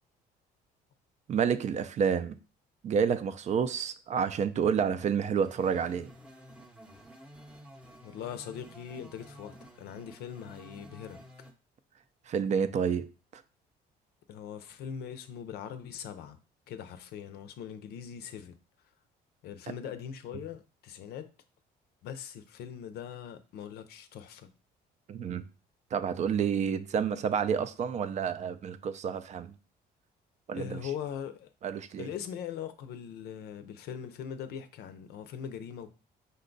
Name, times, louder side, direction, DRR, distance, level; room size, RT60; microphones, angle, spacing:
voice 1, 1.3-2.3 2.8-6.1 12.3-13.1 13.3-13.4 25.1-25.4 25.9-29.5 30.5-30.8 31.6-32.1, right 7 dB, 45° right, 0.4 m, -29 dB
sound 1, 5.4-11.5, right 1 dB, 5° right, 0.7 m, -52 dB
voice 2, 8.0-11.2 14.3-16.4 16.7-18.6 19.4-21.3 22.0-24.5 30.5-31.5 32.0-35.9, left 8 dB, 70° left, 0.6 m, -41 dB
5.3 x 2.3 x 3.9 m
cardioid pair, 110°, 17 cm